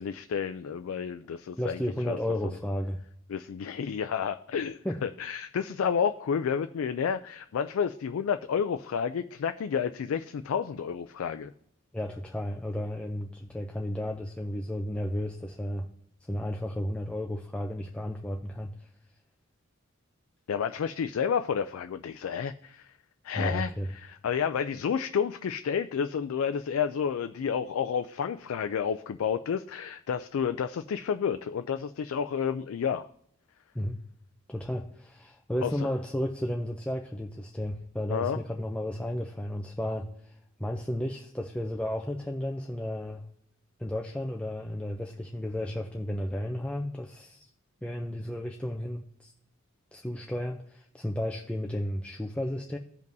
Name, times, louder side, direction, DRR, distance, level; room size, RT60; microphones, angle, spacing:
voice 1, 0.0-2.2 3.3-11.5 20.5-22.9 23.2-33.1 35.6-35.7 38.1-38.4, left 7 dB, 80° left, 9 dB, 0.4 m, -30 dB
voice 2, 1.6-3.0 4.8-5.0 11.9-15.9 16.3-18.9 23.3-23.9 33.7-34.0 34.5-43.2 43.8-47.5 47.8-49.3 49.9-52.8, left 1 dB, 5° left, 1 dB, 0.4 m, -33 dB
15.5 x 5.3 x 2.6 m, 0.73 s
head